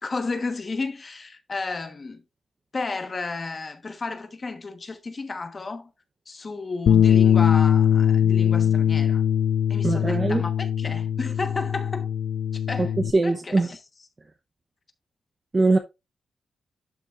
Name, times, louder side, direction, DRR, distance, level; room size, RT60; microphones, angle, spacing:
voice 1, 0.0-2.2 2.7-5.9 6.3-9.2 9.7-12.1 12.5-12.9 13.2-13.8, left 3 dB, 30° left, 1.2 m, -32 dB
Bass guitar, 6.9-13.1, left 9 dB, 85° left, 0.4 m, -21 dB
voice 2, 9.8-10.4 12.8-13.7 15.5-15.8, right 3 dB, 25° right, 0.7 m, -22 dB
11.5 x 5.8 x 2.5 m
wide cardioid pair, 160°, 0 cm